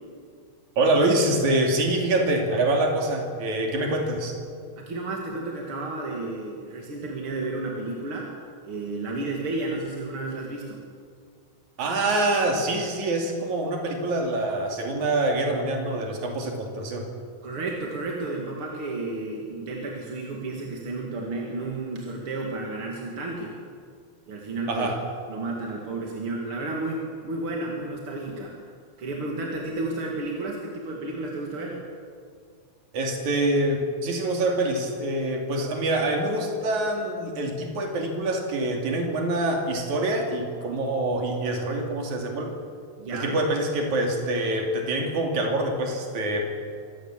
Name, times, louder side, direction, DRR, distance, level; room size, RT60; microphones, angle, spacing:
voice 1, 0.8-4.4 11.8-17.1 24.7-25.0 32.9-42.5 43.1-46.6, right 2 dB, 80° right, 2 dB, 4.1 m, -25 dB
voice 2, 4.8-8.3 8.6-10.8 17.4-23.6 24.3-24.9 25.3-28.5 29.0-31.8 43.0-43.3, right 2 dB, 45° right, -1 dB, 3.0 m, -32 dB
24.5 x 17.5 x 7.5 m, 2.2 s
omnidirectional pair, 3.3 m